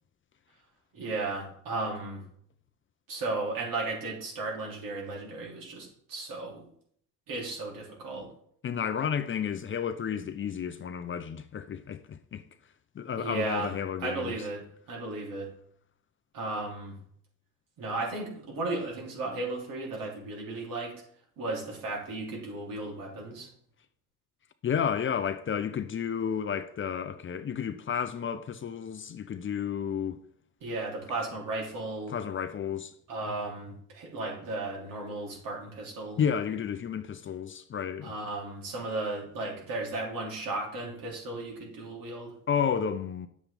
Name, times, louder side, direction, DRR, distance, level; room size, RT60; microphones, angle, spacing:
voice 1, 0.9-2.2 3.1-6.7 7.3-8.3 13.2-13.7 14.0-15.5 16.3-17.0 17.8-20.9 21.4-23.5 30.6-32.1 33.1-36.2 38.0-42.3, right 2 dB, 65° right, 3.3 m, -35 dB
voice 2, 8.6-12.4 12.9-14.4 24.6-30.2 32.1-32.9 36.2-38.1 42.5-43.3, left 7 dB, 35° left, 0.6 m, -31 dB
9.6 x 7.3 x 3.5 m
cardioid pair, 100°, 36 cm